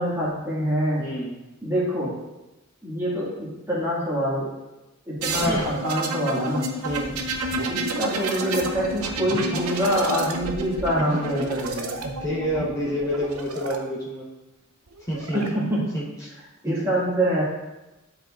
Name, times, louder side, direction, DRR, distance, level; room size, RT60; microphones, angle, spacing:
voice 1, 0.0-1.0 1.6-2.2 2.8-4.5 5.1-6.7 7.7-12.0 15.3-15.9 16.6-17.4, equal, 15° right, -7 dB, 1.9 m, -25 dB
voice 2, 1.0-1.4 5.4-5.7 6.8-7.2 10.9-11.5 12.2-14.3 15.1-15.4 15.9-16.3 16.7-16.8, equal, 15° left, -8 dB, 1.0 m, -28 dB
sound 1, 5.2-13.8 14.9-15.5, right 2 dB, 90° right, 0.7 m, -30 dB
11.0 x 4.6 x 2.5 m, 1.0 s
head